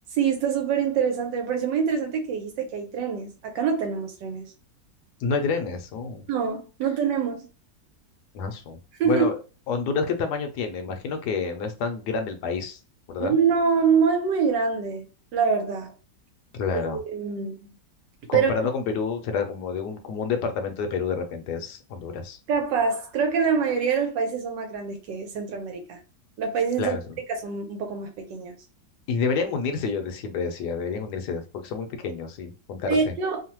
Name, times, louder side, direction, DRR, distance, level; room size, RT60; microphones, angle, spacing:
voice 1, 0.2-4.5 6.3-7.5 9.0-9.3 13.2-15.1 15.3-15.9 16.7-17.6 18.3-18.5 22.5-26.0 26.4-27.0 27.4-28.5 32.9-33.4, right 6 dB, 80° right, 1.3 m, -25 dB
voice 2, 5.2-6.3 8.3-8.8 9.0-9.4 9.7-12.8 13.1-13.3 16.5-17.0 18.3-22.4 26.8-27.2 29.1-33.1, left 5 dB, 75° left, 1.1 m, -28 dB
3.1 x 2.1 x 2.9 m
omnidirectional pair, 2.0 m